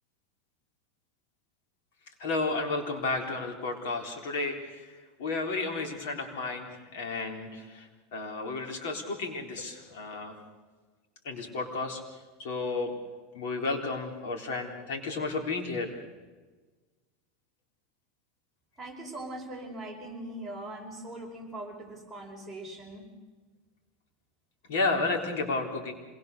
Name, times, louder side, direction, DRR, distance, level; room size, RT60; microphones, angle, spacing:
voice 1, 2.2-10.4 11.2-12.0 12.4-12.9 13.3-15.9 24.7-25.9, left 3 dB, 75° left, 3 dB, 3.8 m, -32 dB
voice 2, 18.8-23.1, right 1 dB, ahead, 0 dB, 5.2 m, -41 dB
26.0 x 20.5 x 6.8 m, 1.3 s
supercardioid pair, 160°, 0 cm